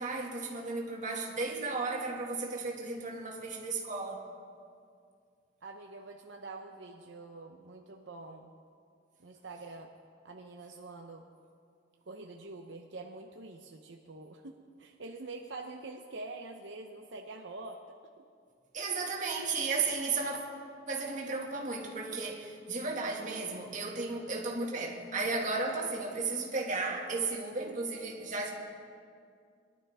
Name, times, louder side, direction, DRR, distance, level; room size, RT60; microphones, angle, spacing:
voice 1, 0.0-4.2 18.7-20.4 20.9-28.5, right 3 dB, 45° right, -1 dB, 2.0 m, -34 dB
voice 2, 5.6-8.5 9.2-9.9 10.2-11.3 12.1-17.8, right 3 dB, 75° right, 2 dB, 0.8 m, -45 dB
22.5 x 11.5 x 3.5 m, 2.2 s
head